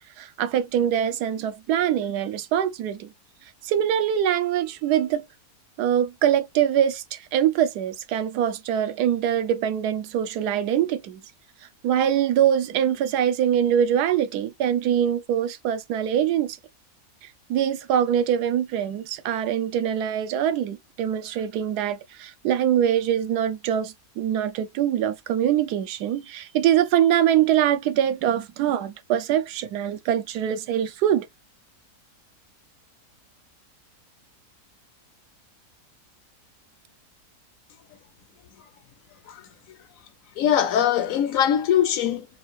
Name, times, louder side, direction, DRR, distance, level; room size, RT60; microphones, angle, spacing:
voice 1, 0.2-3.1 3.6-5.2 5.8-11.2 11.8-16.6 17.5-31.3, right 10 dB, 90° right, 1.2 m, -23 dB
voice 2, 40.4-42.3, left 9 dB, 70° left, 0.9 m, -21 dB
5.6 x 2.4 x 3.2 m
omnidirectional pair, 1.7 m